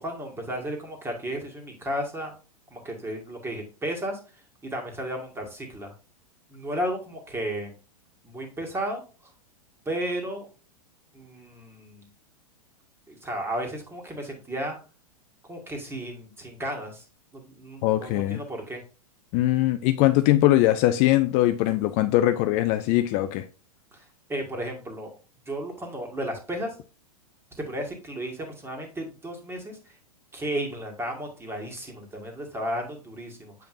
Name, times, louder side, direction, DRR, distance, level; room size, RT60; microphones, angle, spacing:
voice 1, 0.0-2.3 2.7-4.2 4.7-5.9 6.5-7.8 8.2-9.0 9.9-10.5 11.1-12.1 13.1-14.8 15.5-17.0 17.3-18.8 23.9-24.0 24.3-25.1 25.5-26.7 27.7-29.8 30.3-33.5, right 1 dB, 10° right, 1.8 m, -33 dB
voice 2, 17.8-18.4 19.3-23.4, left 15 dB, 35° left, 0.4 m, -21 dB
7.7 x 5.0 x 2.5 m
hypercardioid pair, 105°, 19 cm